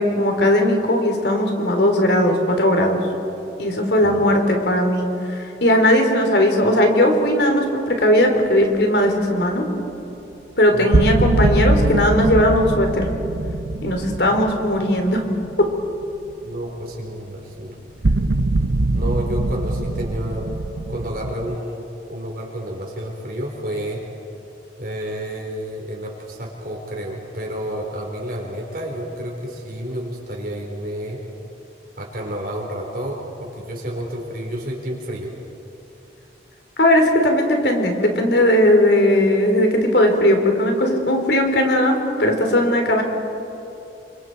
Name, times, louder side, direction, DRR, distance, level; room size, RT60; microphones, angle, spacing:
voice 1, 0.0-3.0 3.6-9.6 10.6-13.1 13.8-15.2 15.6-15.7 36.8-43.0, left 1 dB, 70° left, 3 dB, 3.5 m, -18 dB
voice 2, 10.7-11.0 16.4-17.7 18.9-20.5 20.9-24.0 24.8-31.2 32.0-35.3, equal, 55° right, -2 dB, 4.2 m, -30 dB
sound 1, 10.9-16.0 16.3-16.4 18.0-21.5, right 2 dB, 90° right, 0.8 m, -22 dB
29.0 x 25.5 x 4.6 m, 3.0 s
head